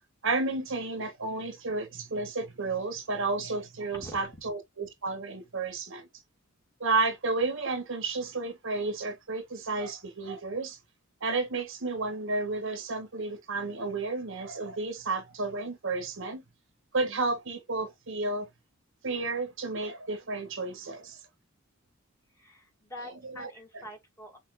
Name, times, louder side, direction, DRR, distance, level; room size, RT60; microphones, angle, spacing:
voice 1, 0.2-6.1 6.8-10.8 11.2-16.4 16.9-18.5 19.0-21.2 23.4-23.5, right 3 dB, 65° right, 1.3 m, -32 dB
voice 2, 22.3-24.4, left 1 dB, 15° left, 2.4 m, -45 dB
6.1 x 2.8 x 2.5 m
head